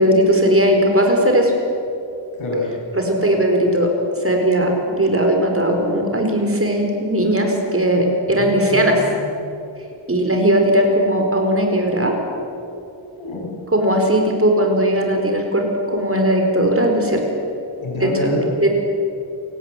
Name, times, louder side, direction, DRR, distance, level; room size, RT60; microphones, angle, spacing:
voice 1, 0.0-1.5 2.9-3.9 4.2-9.0 10.1-12.2 13.7-17.2 17.9-18.3 18.6-18.7, equal, 30° right, 2 dB, 4.6 m, -18 dB
voice 2, 2.4-2.7 8.4-9.5 13.2-13.5 17.8-18.4, left 1 dB, 85° left, -1 dB, 6.9 m, -27 dB
28.5 x 18.0 x 8.1 m, 2.7 s
wide cardioid pair, 105°, 47 cm